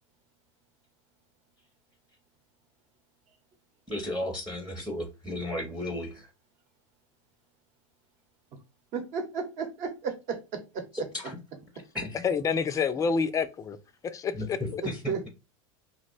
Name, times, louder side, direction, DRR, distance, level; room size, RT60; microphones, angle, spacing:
voice 1, 3.9-6.3 10.9-11.4 11.9-12.2 14.3-15.3, left 1 dB, 5° right, 0.7 m, -34 dB
voice 2, 8.9-10.8 14.8-15.3, right 5 dB, 45° right, 0.9 m, -33 dB
voice 3, 12.2-13.8 14.0-14.8, left 5 dB, 20° left, 0.4 m, -28 dB
2.8 x 2.1 x 4.0 m
supercardioid pair, 115°, 17 cm